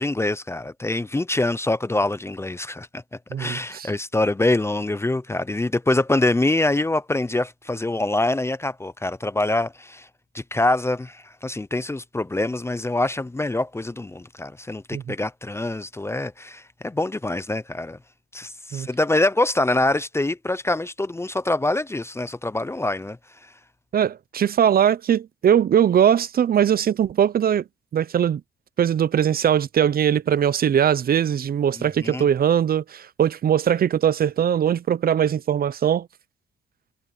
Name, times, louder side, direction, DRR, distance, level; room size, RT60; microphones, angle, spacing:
voice 1, 0.0-3.0 3.4-10.1 10.3-18.0 18.3-23.2 23.4-23.5 31.8-32.3, left 2 dB, 15° left, 0.6 m, -25 dB
voice 2, 3.3-3.9 14.9-15.1 18.7-18.9 23.9-27.6 27.9-28.4 28.8-36.1, right 9 dB, 50° right, 0.7 m, -20 dB
cardioid pair, 90°, 20 cm